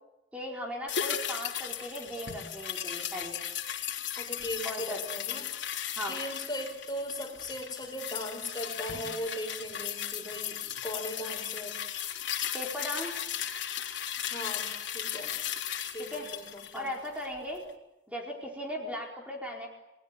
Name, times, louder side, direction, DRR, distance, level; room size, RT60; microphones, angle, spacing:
voice 1, 0.3-3.4 4.6-5.0 6.0-6.2 12.5-13.2 16.1-16.3 16.7-17.6 18.1-19.7, left 1 dB, 5° right, -1 dB, 4.5 m, -37 dB
sound 1, 0.9-17.4 17.7-17.8, left 9 dB, 75° left, 3.4 m, -36 dB
voice 2, 4.2-5.5 6.0-11.8 14.3-15.4 15.9-16.9, left 1 dB, 25° left, 5 dB, 5.0 m, -38 dB
29.0 x 20.5 x 9.5 m, 0.98 s
head